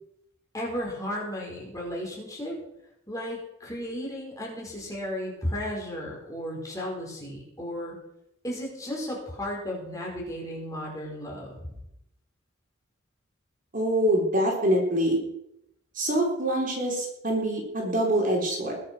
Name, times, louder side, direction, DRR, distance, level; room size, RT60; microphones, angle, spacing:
voice 1, 0.5-2.5 3.1-7.9 8.4-11.7, equal, 15° left, -2 dB, 4.9 m, -34 dB
voice 2, 13.7-15.2 16.0-18.7, right 1 dB, 40° right, -1 dB, 3.8 m, -25 dB
21.0 x 7.6 x 6.1 m, 0.81 s
head